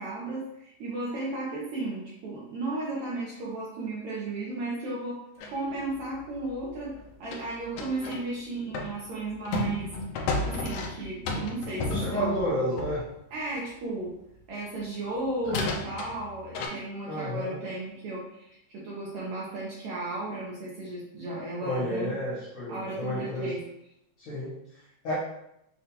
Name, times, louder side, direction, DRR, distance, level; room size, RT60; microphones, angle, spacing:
voice 1, 0.0-5.2 5.5-9.9 10.4-12.9 13.3-14.2 14.5-22.2 22.7-23.6, right 2 dB, 75° right, -6 dB, 2.0 m, -34 dB
sound 1, 5.4-8.3 8.7-13.1 14.8-14.9 15.4-16.7, left 2 dB, 80° left, 1.4 m, -33 dB
voice 2, 11.8-13.0 17.1-17.6 21.6-23.6 24.2-25.2, equal, 65° left, -8 dB, 1.4 m, -31 dB
6.8 x 2.4 x 2.9 m, 0.81 s
omnidirectional pair, 3.4 m